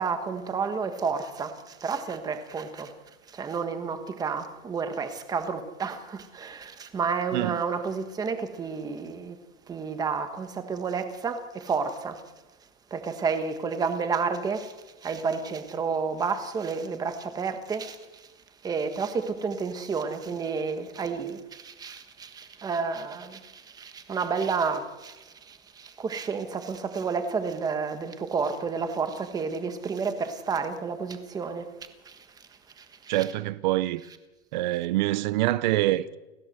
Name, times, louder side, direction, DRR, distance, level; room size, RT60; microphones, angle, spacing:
voice 1, 0.0-2.9 3.3-9.4 9.7-12.2 12.9-18.3 18.6-31.8 32.0-32.5 32.8-33.3, right 5 dB, 10° right, 1.4 m, -31 dB
voice 2, 33.1-34.0 34.5-36.2, right 16 dB, 35° right, 0.7 m, -25 dB
30.0 x 14.5 x 8.0 m
supercardioid pair, 175°, 40 cm